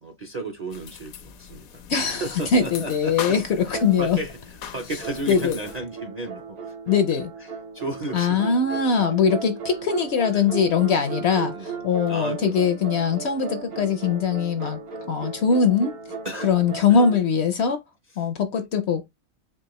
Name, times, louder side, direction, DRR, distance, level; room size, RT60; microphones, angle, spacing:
voice 1, 0.0-3.4 3.7-4.4 4.7-6.7 7.7-8.8 9.1-9.2 10.3-10.5 11.3-11.8 12.1-12.7 13.0-13.1 13.7-13.8 16.2-16.5 16.9-17.0, right 2 dB, 45° right, 0.5 m, -34 dB
sound 1, 0.7-5.8, left 8 dB, 80° left, 1.1 m, -40 dB
voice 2, 1.9-2.2 2.5-4.2 5.3-5.6 6.9-7.3 8.1-16.0 16.4-17.8 18.2-19.1, left 6 dB, 65° left, 0.7 m, -22 dB
sound 2, 3.7-4.5 5.0-17.2, right 5 dB, 70° right, 1.7 m, -36 dB
4.6 x 2.4 x 3.0 m
omnidirectional pair, 1.5 m